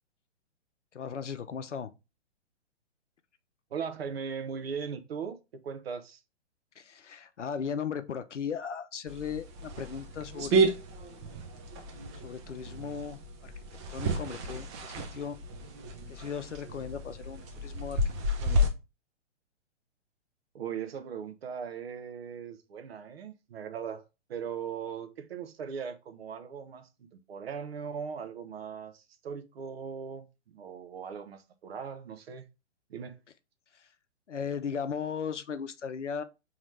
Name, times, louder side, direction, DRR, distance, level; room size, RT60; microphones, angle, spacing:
voice 1, 0.9-1.9 6.8-10.7 12.1-13.5 13.9-15.4 16.1-18.0 18.4-18.6 33.7-33.9 34.3-36.2, left 7 dB, 80° left, 0.6 m, -37 dB
voice 2, 3.7-6.2 20.5-24.0 24.3-32.4 32.9-33.2, right 6 dB, 55° right, 0.8 m, -39 dB
sound 1, 9.1-18.7, right 1 dB, 25° right, 0.6 m, -32 dB
4.0 x 3.0 x 3.1 m
figure-of-eight pair, 120°, 35 cm